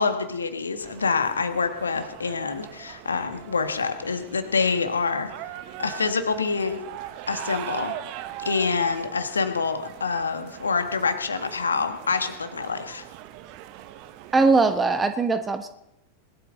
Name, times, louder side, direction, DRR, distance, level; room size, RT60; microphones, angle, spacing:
voice 1, 0.0-5.5 5.8-6.8 7.3-7.9 8.4-13.0, left 4 dB, 75° left, 8 dB, 1.6 m, -26 dB
sound 1, 0.8-15.1, right 12 dB, 45° right, 1.0 m, -41 dB
voice 2, 14.3-15.7, right 3 dB, 15° right, 8 dB, 1.3 m, -20 dB
20.5 x 12.5 x 3.9 m, 0.86 s
figure-of-eight pair, 90°, 0 cm